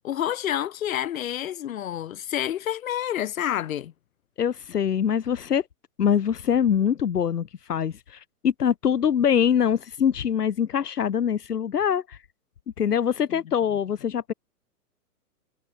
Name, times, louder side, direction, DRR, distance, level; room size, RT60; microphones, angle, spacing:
voice 1, 0.0-3.9 13.3-13.4, left 11 dB, 60° left, 3.8 m, -29 dB
voice 2, 4.4-5.6 6.0-12.2 12.8-14.3, left 8 dB, 80° left, 2.3 m, -24 dB
hypercardioid pair, 145°, 47 cm